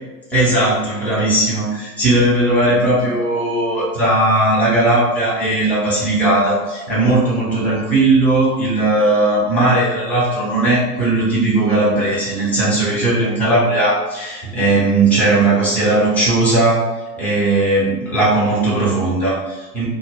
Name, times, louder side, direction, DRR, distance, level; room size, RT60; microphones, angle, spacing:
voice 1, 0.3-16.9 17.2-19.9, right 2 dB, 5° left, -8 dB, 0.6 m, -17 dB
2.1 x 2.1 x 3.5 m, 1.2 s
figure-of-eight pair, 105°, 49 cm